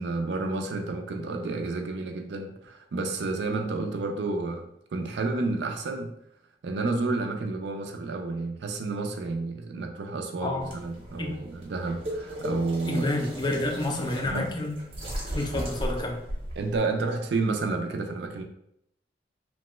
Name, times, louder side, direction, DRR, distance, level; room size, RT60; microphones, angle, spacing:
voice 1, 0.0-4.6 4.9-6.1 6.6-13.0 14.3-14.5 16.6-18.4, right 3 dB, 70° right, 4 dB, 0.4 m, -30 dB
sound 1, 10.6-16.8, equal, 35° right, 0.7 m, -36 dB
voice 2, 12.9-14.7 15.3-16.2, left 2 dB, 25° left, 2 dB, 0.4 m, -29 dB
2.9 x 2.2 x 3.0 m, 0.77 s
head